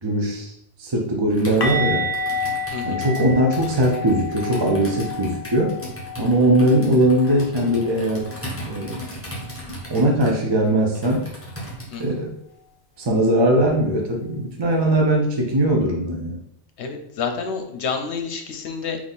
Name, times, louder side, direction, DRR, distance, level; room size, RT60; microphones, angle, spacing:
voice 1, 0.0-0.5 0.8-2.1 2.8-5.8 6.2-8.3 8.6-9.0 9.9-11.3 12.0-12.4 13.0-16.4, right 1 dB, 30° right, 0 dB, 0.6 m, -20 dB
Computer keyboard, 1.3-12.1, equal, 10° left, 1.0 m, -37 dB
sound 1, 1.6-7.4 7.6-7.9 8.2-8.4 11.6-11.7, left 2 dB, 30° left, 0.4 m, -29 dB
voice 2, 2.7-3.0 11.9-12.2 16.8-19.0, left 5 dB, 70° left, 6 dB, 1.0 m, -29 dB
3.8 x 3.0 x 4.0 m, 0.73 s
omnidirectional pair, 1.2 m